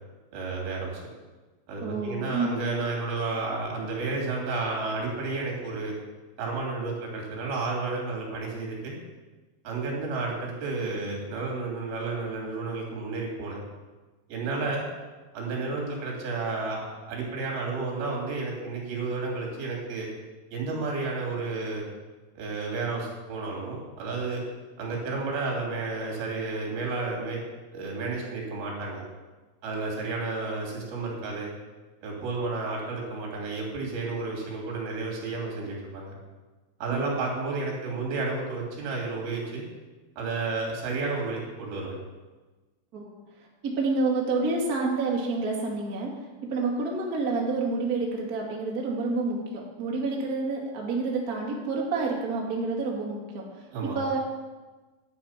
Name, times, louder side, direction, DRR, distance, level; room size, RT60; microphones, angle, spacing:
voice 1, 0.3-1.0 1.7-6.0 6.4-9.0 9.6-13.6 14.3-14.8 15.3-20.1 20.5-21.9 22.4-24.4 24.8-27.4 27.7-29.0 29.6-31.5 32.0-36.1 36.8-39.6 40.2-42.0 53.7-54.0, right 3 dB, 55° right, -1 dB, 4.6 m, -31 dB
voice 2, 1.8-2.5 42.9-43.1 43.6-46.1 46.4-53.6 53.9-54.2, right 3 dB, 40° right, -2 dB, 1.4 m, -28 dB
11.5 x 8.8 x 5.8 m, 1.2 s
omnidirectional pair, 5.3 m